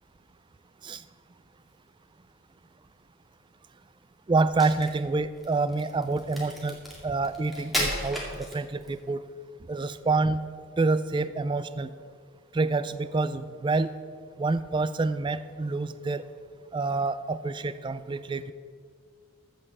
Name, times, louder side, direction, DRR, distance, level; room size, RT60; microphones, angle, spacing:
voice 1, 4.3-6.8 7.0-9.2 9.7-10.4 10.8-11.9 12.5-13.9 14.4-16.3 16.7-18.5, right 3 dB, 20° right, 13 dB, 0.3 m, -27 dB
Crack, 4.4-9.0, equal, ahead, 2.2 m, -34 dB
14.5 x 5.4 x 7.2 m, 2.1 s
head